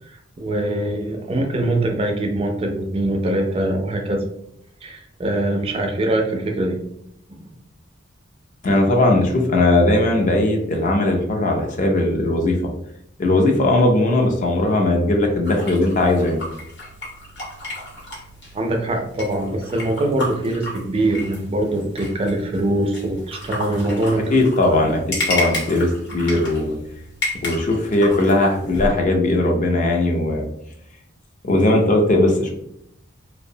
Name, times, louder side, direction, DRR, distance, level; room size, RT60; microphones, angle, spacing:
voice 1, 0.1-4.2 4.8-6.8 7.3-7.4 18.5-24.2 24.7-24.8, right 1 dB, 30° right, 3 dB, 0.3 m, -23 dB
voice 2, 8.6-12.6 13.2-16.4 24.3-25.0 25.3-26.7 27.4-30.5 31.4-32.5, left 2 dB, 40° left, 2 dB, 0.4 m, -18 dB
sound 1, 15.4-28.9, left 1 dB, 60° left, 0.9 m, -32 dB
2.5 x 2.0 x 2.6 m, 0.75 s
head